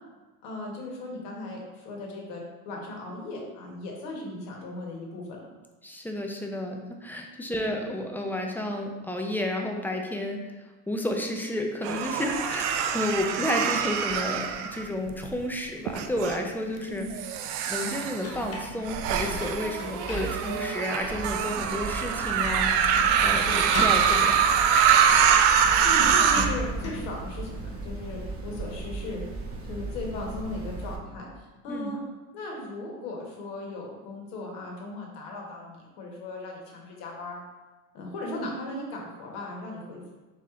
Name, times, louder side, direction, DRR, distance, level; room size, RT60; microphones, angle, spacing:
voice 1, 0.4-5.4 7.5-7.8 16.9-17.1 23.4-23.6 25.8-29.2 29.7-32.0 32.3-37.4 37.9-40.1, left 2 dB, 75° left, -1 dB, 1.4 m, -37 dB
voice 2, 5.8-10.4 10.9-17.1 17.7-24.5 31.7-31.9, left 1 dB, 5° left, 2 dB, 0.5 m, -31 dB
sound 1, 11.8-15.3 15.9-16.4 17.1-26.5, right 7 dB, 65° right, 0.6 m, -24 dB
sound 2, 18.2-20.8 21.3-21.4 22.8-23.3 23.5-24.2 25.2-25.3 25.6-27.1, left 1 dB, 30° left, 0.9 m, -36 dB
sound 3, 21.0-31.0, right 3 dB, 30° right, 0.9 m, -37 dB
4.2 x 3.1 x 3.7 m, 1.2 s
supercardioid pair, 95°, 45 cm